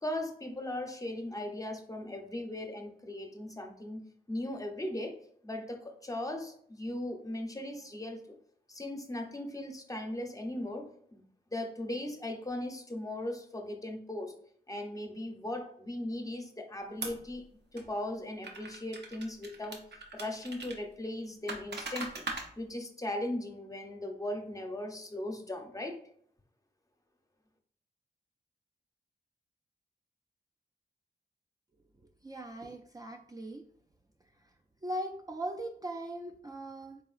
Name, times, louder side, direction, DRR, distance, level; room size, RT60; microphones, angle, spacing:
voice 1, 0.0-4.0 4.3-5.2 5.4-8.2 8.7-11.2 11.5-14.4 14.7-17.5 17.7-19.9 20.1-22.2 22.6-26.0, left 1 dB, 20° left, 4 dB, 0.6 m, -38 dB
sound 1, 17.0-17.3 17.8-17.9 18.4-20.8 21.5-22.5, right 3 dB, 85° right, 0.8 m, -40 dB
voice 2, 32.2-33.6 34.8-37.0, right 1 dB, 20° right, 2 dB, 0.3 m, -39 dB
4.0 x 3.7 x 2.4 m, 0.62 s
wide cardioid pair, 90°, 17 cm